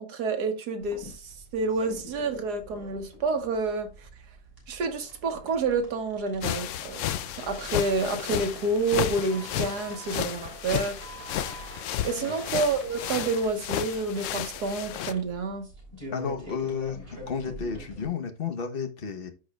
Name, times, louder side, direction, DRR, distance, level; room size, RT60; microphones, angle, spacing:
voice 1, 0.0-4.1 4.7-7.1 7.4-11.0 12.0-15.7, right 3 dB, 80° right, 1.7 m, -29 dB
sound 1, 0.8-18.1, equal, 35° right, 3.4 m, -46 dB
sound 2, 6.4-15.1, left 11 dB, 70° left, 0.7 m, -33 dB
Wind instrument woodwind instrument, 9.3-13.5, right 4 dB, 10° right, 2.8 m, -48 dB
voice 2, 16.1-19.3, left 6 dB, 40° left, 1.1 m, -32 dB
13.0 x 4.9 x 2.3 m
omnidirectional pair, 1.7 m